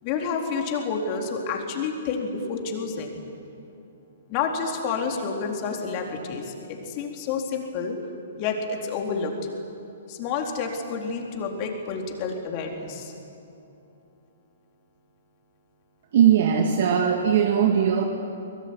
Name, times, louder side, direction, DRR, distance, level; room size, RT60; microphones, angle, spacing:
voice 1, 0.0-3.2 4.3-8.0 8.4-9.3 10.1-13.1, left 5 dB, 35° left, 2 dB, 4.2 m, -29 dB
voice 2, 16.1-18.0, right 8 dB, 50° right, 3 dB, 2.1 m, -19 dB
24.0 x 22.0 x 9.8 m, 2.7 s
figure-of-eight pair, 120°, 0 cm